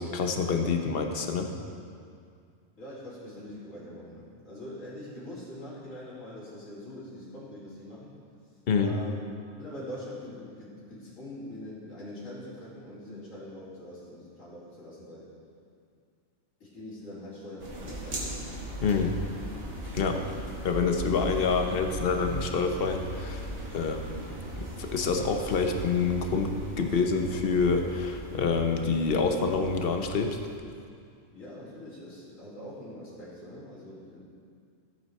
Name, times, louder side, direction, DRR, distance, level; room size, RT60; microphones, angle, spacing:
voice 1, 0.0-1.5 8.7-9.0 18.8-19.2 19.9-20.3 20.6-24.2 24.6-30.4, left 4 dB, 50° left, 5 dB, 0.9 m, -27 dB
voice 2, 2.8-8.1 8.8-9.2 9.6-15.3 16.6-18.4 31.3-34.2, left 1 dB, 80° left, -8 dB, 3.1 m, -43 dB
sound 1, 17.6-30.6, right 1 dB, 65° right, 1.9 m, -39 dB
14.0 x 8.4 x 3.2 m, 2.3 s
omnidirectional pair, 1.4 m